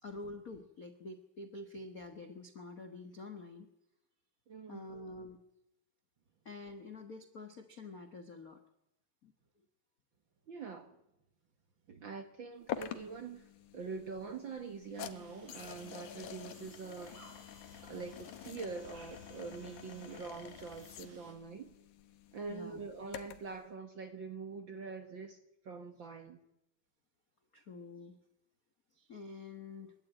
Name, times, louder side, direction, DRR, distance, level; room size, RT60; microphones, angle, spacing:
voice 1, 0.0-3.7 4.7-5.4 6.4-8.6 9.2-9.3 13.8-14.0 22.5-22.8 27.5-28.2 28.9-29.9, left 3 dB, 50° left, 7 dB, 1.0 m, -47 dB
voice 2, 4.5-4.9 10.5-11.0 11.9-13.5 13.7-17.2 17.8-21.7 22.3-25.4 25.6-26.4, right 5 dB, 50° right, 7 dB, 1.5 m, -44 dB
sound 1, 12.7-23.6, left 10 dB, 75° left, 2.5 m, -48 dB
sound 2, 14.9-21.3, right 2 dB, 70° right, 5.6 m, -60 dB
29.0 x 12.5 x 9.1 m, 0.88 s
omnidirectional pair, 3.7 m